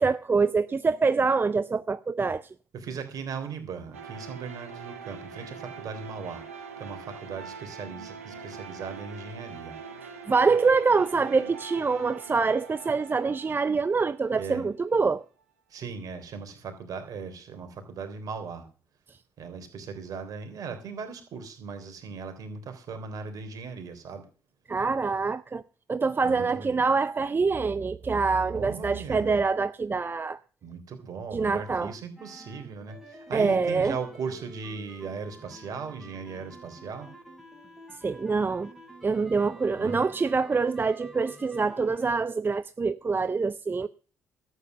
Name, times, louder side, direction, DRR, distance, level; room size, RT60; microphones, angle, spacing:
voice 1, 0.0-2.4 10.3-15.2 24.7-25.6 25.9-30.4 31.3-31.9 33.3-34.0 38.0-38.7 39.0-43.9, right 4 dB, 30° right, 0.5 m, -25 dB
voice 2, 2.7-6.4 6.8-9.8 14.4-14.7 15.7-18.7 19.4-24.3 26.2-26.8 28.5-29.4 30.6-37.1 39.8-40.0, right 5 dB, 55° right, 3.4 m, -38 dB
sound 1, 3.9-14.8, right 5 dB, 90° right, 1.2 m, -43 dB
sound 2, 32.2-42.2, equal, ahead, 4.1 m, -49 dB
13.0 x 8.4 x 6.6 m
hypercardioid pair, 45°, 7 cm